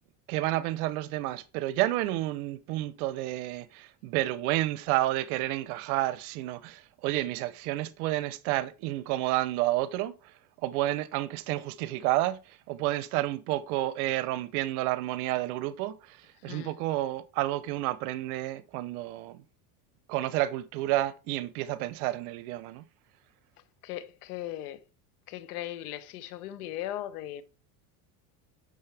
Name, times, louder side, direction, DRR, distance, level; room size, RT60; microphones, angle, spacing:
voice 1, 0.3-10.3 10.6-19.4 20.1-22.8, right 16 dB, 75° right, 0.8 m, -30 dB
voice 2, 23.8-24.8 25.3-27.4, left 13 dB, 90° left, 1.1 m, -38 dB
9.4 x 6.4 x 3.4 m
supercardioid pair, 125°, 44 cm